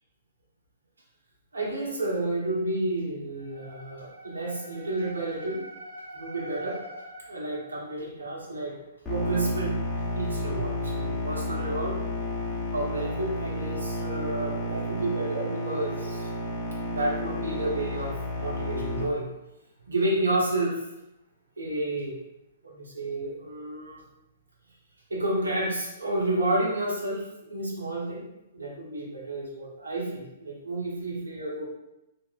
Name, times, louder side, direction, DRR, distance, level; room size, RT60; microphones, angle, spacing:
voice 1, 1.5-8.8 9.1-9.9 10.1-12.0 12.7-16.3 16.9-19.3 19.9-20.8 21.6-22.1 22.6-24.0 25.1-28.2 28.5-31.6, right 2 dB, 85° right, -2 dB, 0.7 m, -30 dB
sound 1, 9.1-19.0, left 1 dB, 5° left, 0.8 m, -31 dB
2.8 x 2.3 x 2.3 m, 0.91 s
hypercardioid pair, 120°, 0 cm